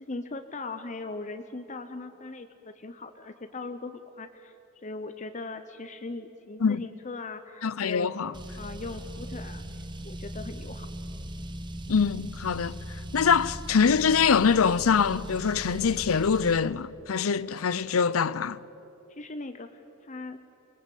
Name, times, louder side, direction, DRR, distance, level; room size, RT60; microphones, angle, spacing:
voice 1, 0.1-8.1 8.6-10.9 19.1-20.4, left 3 dB, 35° left, 0.8 m, -39 dB
voice 2, 7.6-8.3 11.9-12.8 13.1-18.6, left 6 dB, 90° left, 0.6 m, -24 dB
Car, 8.3-16.6, right 1 dB, 20° right, 1.2 m, -39 dB
24.5 x 20.5 x 8.4 m
head